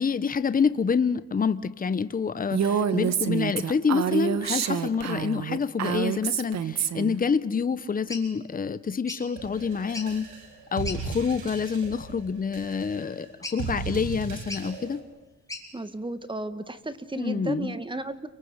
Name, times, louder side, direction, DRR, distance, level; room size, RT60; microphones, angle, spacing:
voice 1, 0.0-10.3 10.7-15.0 17.1-17.7, left 5 dB, 30° left, 14 dB, 1.1 m, -27 dB
Female speech woman speaking, 2.5-7.2, right 8 dB, 60° right, 1.7 m, -27 dB
sound 1, 8.1-8.2 9.1-9.3 9.8-10.2 10.8-11.0 11.6-11.8 13.4-13.8 14.5-14.7 15.5-15.7, left 2 dB, 10° left, 6.0 m, -38 dB
sound 2, 9.4-15.0, right 6 dB, 85° right, 5.9 m, -37 dB
voice 2, 15.7-18.3, right 2 dB, 15° right, 12 dB, 2.0 m, -34 dB
29.5 x 24.5 x 8.2 m, 0.96 s
cardioid pair, 90°, 30 cm